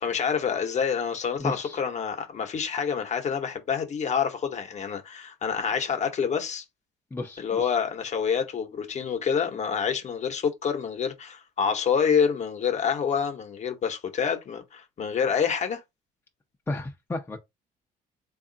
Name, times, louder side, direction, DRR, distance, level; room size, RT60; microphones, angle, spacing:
voice 1, 0.0-6.6 7.4-15.8, left 7 dB, 45° left, 0.9 m, -27 dB
voice 2, 1.4-1.8 7.1-7.7 16.7-17.4, left 2 dB, 15° left, 0.6 m, -33 dB
3.5 x 2.4 x 3.8 m
cardioid pair, 110°, 17 cm